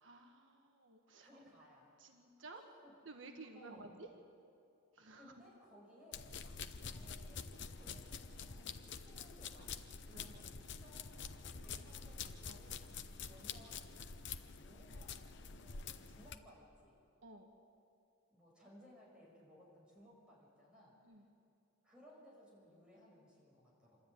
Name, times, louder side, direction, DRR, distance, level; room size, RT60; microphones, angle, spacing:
voice 1, 0.0-1.3 2.0-2.7 3.0-4.1 4.9-5.3 10.2-10.3 12.5-12.8 17.2-17.5 21.0-21.3, right 3 dB, 70° right, 3 dB, 1.4 m, -54 dB
voice 2, 1.2-1.9 2.5-2.9 3.5-3.9 5.2-6.3 6.8-9.7 10.0-12.8 13.3-13.8 14.5-17.0 18.3-20.9 21.8-24.0, equal, 5° right, -5 dB, 7.3 m, -62 dB
sound 1, 6.1-16.4, left 6 dB, 65° left, 0.9 m, -47 dB
26.5 x 13.0 x 9.4 m, 2.5 s
head